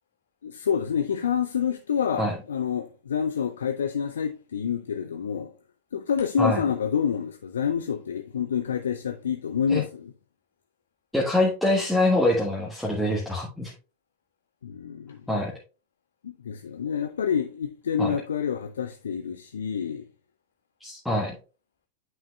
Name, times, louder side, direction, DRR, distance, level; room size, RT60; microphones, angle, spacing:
voice 1, 0.4-5.5 5.9-10.1 14.6-15.2 16.2-20.0, left 7 dB, 65° left, 0.5 m, -28 dB
voice 2, 11.1-13.7 15.3-15.5 18.0-18.1 20.8-21.3, left 1 dB, ahead, 1.4 m, -24 dB
9.2 x 5.6 x 2.4 m
figure-of-eight pair, 90°, 0 cm